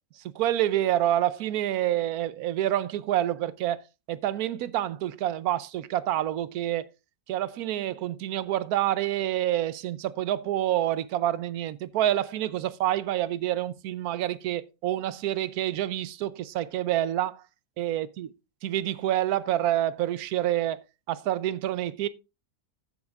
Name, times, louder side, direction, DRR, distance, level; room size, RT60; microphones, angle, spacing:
voice 1, 0.2-3.8 4.1-6.9 7.3-17.4 17.8-18.3 18.6-22.1, right 12 dB, 80° right, 1.1 m, -27 dB
13.0 x 7.9 x 2.4 m
omnidirectional pair, 1.6 m